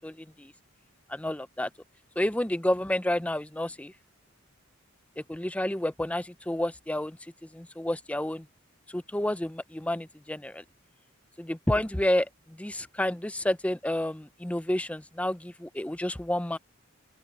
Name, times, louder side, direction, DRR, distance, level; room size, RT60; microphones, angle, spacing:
voice 1, 0.0-0.5 1.1-1.7 2.2-3.9 5.2-7.2 7.5-8.5 8.9-10.6 11.4-16.6, left 1 dB, 5° left, 0.5 m, -30 dB
open air
head